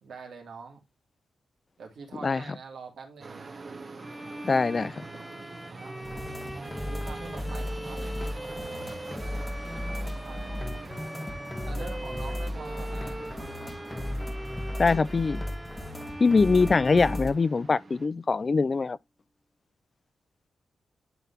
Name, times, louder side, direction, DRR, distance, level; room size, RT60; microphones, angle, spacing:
voice 1, 0.0-0.8 1.8-3.4 5.6-6.1 6.8-8.3 9.8-11.3 11.6-13.2, right 5 dB, 80° right, 2.4 m, -45 dB
sound 1, 3.2-18.1, right 3 dB, 45° right, 1.2 m, -45 dB
Bowed string instrument, 4.0-18.1, equal, ahead, 0.8 m, -42 dB
voice 2, 4.4-5.0 14.8-15.4 16.2-19.0, left 4 dB, 40° left, 0.3 m, -23 dB
sound 2, 6.0-17.3, left 1 dB, 15° left, 1.2 m, -35 dB
10.5 x 3.9 x 2.8 m
cardioid pair, 85°, 0 cm